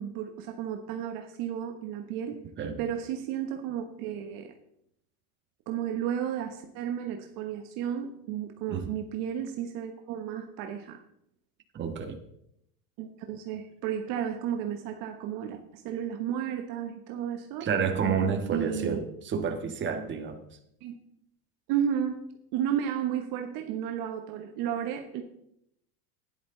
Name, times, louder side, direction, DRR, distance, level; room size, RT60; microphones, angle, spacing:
voice 1, 0.0-2.4 2.8-4.5 5.7-11.0 13.0-17.7 18.5-19.0 20.8-21.0 21.7-22.2 22.5-25.2, right 9 dB, 50° right, 5 dB, 1.3 m, -33 dB
voice 2, 11.7-12.2 17.6-20.4, right 6 dB, 25° right, 4 dB, 1.6 m, -29 dB
12.5 x 10.5 x 3.9 m, 0.75 s
supercardioid pair, 135°, 44 cm